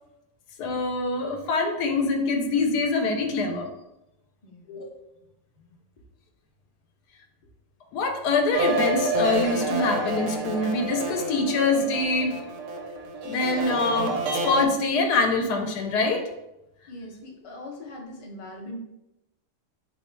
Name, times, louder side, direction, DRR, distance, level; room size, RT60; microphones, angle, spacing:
voice 1, 0.6-3.7 4.7-4.9 7.9-12.3 13.2-14.1 14.4-16.3, left 3 dB, 85° left, 4 dB, 1.2 m, -24 dB
voice 2, 4.4-4.8 16.9-18.8, left 1 dB, 35° left, -3 dB, 0.5 m, -41 dB
sound 1, 8.5-14.7, right 1 dB, 70° right, 0.9 m, -28 dB
4.0 x 2.1 x 4.4 m, 0.91 s
omnidirectional pair, 1.7 m